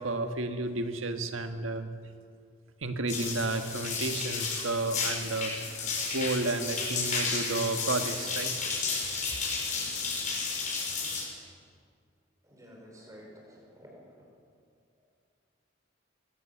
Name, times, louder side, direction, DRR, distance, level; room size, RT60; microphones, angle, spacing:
voice 1, 0.0-1.9 2.8-8.5, right 2 dB, 85° right, 7 dB, 1.6 m, -32 dB
sound 1, 3.1-11.2, left 4 dB, 40° left, 5.6 m, -32 dB
voice 2, 12.5-14.0, equal, 15° right, -1 dB, 5.6 m, -51 dB
22.0 x 18.0 x 7.2 m, 2.2 s
head